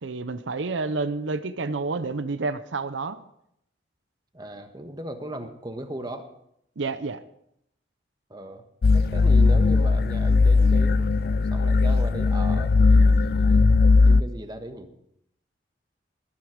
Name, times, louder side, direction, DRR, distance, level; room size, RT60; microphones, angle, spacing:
voice 1, 0.0-3.2 6.8-7.2, right 3 dB, 90° right, 13 dB, 0.7 m, -29 dB
voice 2, 4.3-6.3 8.3-8.6 8.9-15.0, right 1 dB, 20° right, 7 dB, 1.3 m, -37 dB
sound 1, 8.8-14.2, left 3 dB, 55° left, 0.4 m, -18 dB
20.0 x 9.5 x 5.0 m, 0.76 s
head